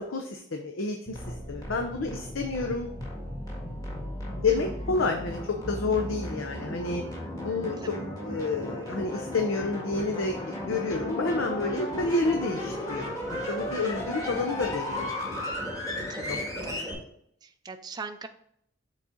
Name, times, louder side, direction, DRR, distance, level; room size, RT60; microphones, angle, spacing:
voice 1, 0.0-2.9 4.4-7.0 7.4-7.8 8.2-15.1 16.2-16.4, left 3 dB, 90° left, 3 dB, 0.7 m, -29 dB
sound 1, 1.1-16.9, left 1 dB, 20° left, 1.7 m, -35 dB
voice 2, 4.4-4.9 7.8-7.9 14.1-14.6 16.1-16.9 17.4-18.3, right 4 dB, 20° right, 7 dB, 0.4 m, -42 dB
7.6 x 4.1 x 3.8 m, 0.70 s
head